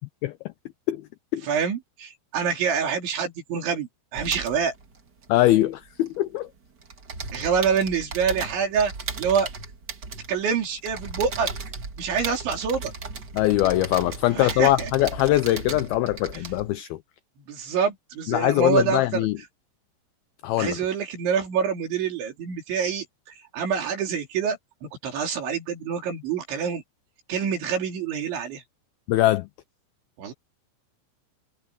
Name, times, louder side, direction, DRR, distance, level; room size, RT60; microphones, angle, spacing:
voice 1, 1.4-4.7 7.3-8.9 9.2-9.5 10.3-11.5 12.0-12.9 14.3-14.9 17.5-19.3 20.6-23.1 23.5-26.8 27.3-28.6 30.2-30.3, right 6 dB, 85° right, 6.2 m, -26 dB
sound 1, 4.1-6.4 6.7-16.8, right 4 dB, 60° right, 1.0 m, -36 dB
voice 2, 5.3-6.5 13.3-17.0 18.3-19.4 20.4-20.8 29.1-29.5, left 15 dB, 90° left, 2.1 m, -22 dB
omnidirectional pair, 5.1 m